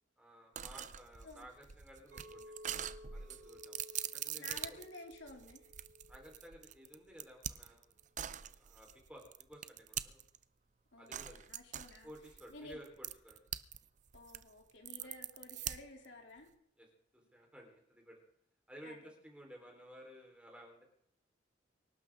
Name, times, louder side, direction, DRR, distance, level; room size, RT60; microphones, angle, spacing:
voice 1, 0.2-2.5 2.8-3.8 4.1-4.8 6.1-7.9 8.6-10.2 11.0-11.5 12.0-13.4 15.0-15.1 16.8-16.9 17.1-18.2 18.7-20.8, equal, 5° right, 0 dB, 4.0 m, -55 dB
sound 1, 0.6-10.4 11.1-13.8 14.1-16.1, right 10 dB, 40° right, 0.6 m, -44 dB
Chink clink, 2.1-7.3, left 1 dB, 65° right, 5.6 m, -57 dB
voice 2, 4.4-5.7 10.9-12.1 12.5-12.8 14.1-16.5 18.8-19.0, left 2 dB, 75° left, 1 dB, 3.1 m, -52 dB
24.5 x 12.0 x 3.7 m, 0.68 s
head